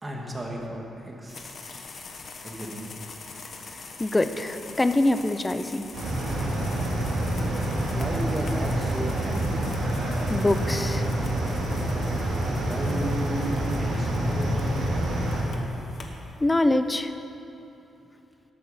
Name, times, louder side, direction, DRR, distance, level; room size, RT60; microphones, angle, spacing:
voice 1, 0.0-1.8 2.4-2.9 7.9-9.6 12.6-13.4 13.8-14.8, equal, 20° right, -1 dB, 1.7 m, -34 dB
sound 1, 1.3-16.7, left 4 dB, 45° left, 1.1 m, -45 dB
voice 2, 4.0-5.9 10.3-11.1 16.4-17.1, left 2 dB, 15° left, 10 dB, 0.5 m, -24 dB
sound 2, 5.9-15.4, right 1 dB, 80° right, 3.1 m, -27 dB
13.0 x 8.6 x 5.6 m, 3.0 s
cardioid pair, 130°, 0 cm